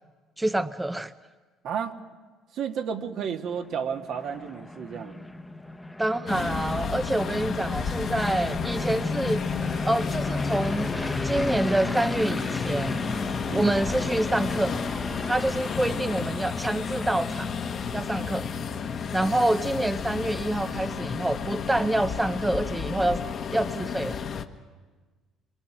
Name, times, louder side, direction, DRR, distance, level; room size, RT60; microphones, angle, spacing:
voice 1, 0.4-1.1 6.0-9.4 9.8-10.9 11.2-13.0 13.5-14.8 15.3-17.5 17.9-18.5 19.1-23.2 23.5-24.2, right 1 dB, 10° right, 11 dB, 0.6 m, -27 dB
voice 2, 1.6-2.0 2.5-5.2 13.5-13.7, right 7 dB, 65° right, 5 dB, 1.6 m, -32 dB
sound 1, 3.3-20.4, left 1 dB, 5° left, 1.0 m, -35 dB
sound 2, 6.3-24.4, left 6 dB, 50° left, 1.3 m, -32 dB
25.5 x 23.0 x 6.0 m, 1.4 s
supercardioid pair, 80°, 0 cm